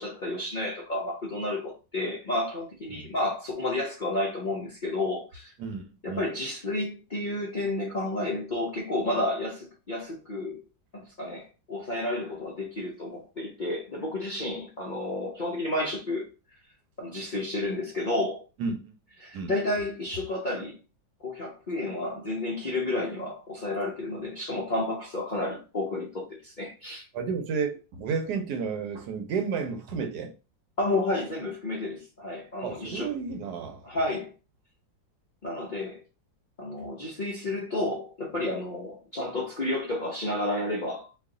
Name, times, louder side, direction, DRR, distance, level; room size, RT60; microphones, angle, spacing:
voice 1, 0.0-5.5 6.0-10.6 10.9-16.3 17.0-18.4 19.2-20.8 21.2-27.1 30.8-33.1 33.8-34.3 35.4-36.0 36.6-41.1, left 2 dB, 80° left, 0.4 m, -31 dB
voice 2, 5.6-6.2 18.6-18.9 19.3-19.5 27.1-30.3 32.6-33.8, right 5 dB, 70° right, 1.2 m, -32 dB
3.1 x 2.5 x 3.7 m
omnidirectional pair, 2.0 m